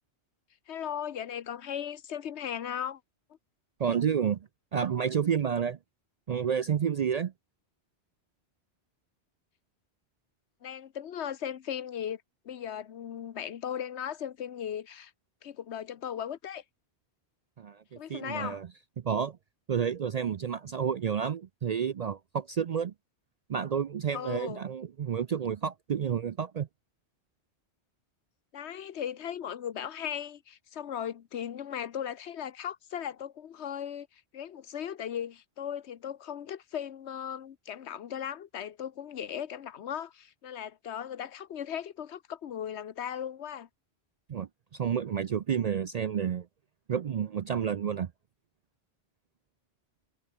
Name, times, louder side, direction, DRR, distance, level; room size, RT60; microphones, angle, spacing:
voice 1, 0.7-3.0 10.6-15.1 15.4-16.6 18.0-18.6 24.1-24.6 28.5-43.7, left 9 dB, 80° left, 1.1 m, -37 dB
voice 2, 3.8-5.8 6.3-7.3 17.6-18.7 19.0-19.4 19.7-22.9 23.5-26.7 44.3-46.5 46.9-48.1, right 7 dB, 55° right, 0.4 m, -30 dB
omnidirectional pair, 1.1 m